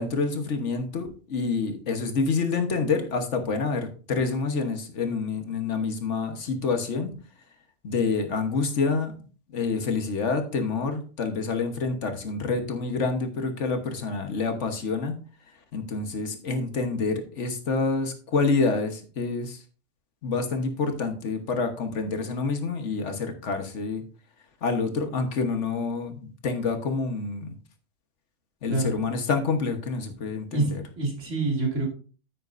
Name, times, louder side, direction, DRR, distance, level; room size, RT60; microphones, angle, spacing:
voice 1, 0.0-7.1 7.8-9.1 9.5-15.1 15.7-19.6 20.2-24.0 24.6-27.5 28.6-30.8, left 4 dB, 75° left, 6 dB, 1.5 m, -27 dB
voice 2, 31.0-31.9, right 2 dB, 80° right, 0 dB, 2.7 m, -26 dB
9.2 x 8.7 x 2.6 m, 0.39 s
omnidirectional pair, 1.2 m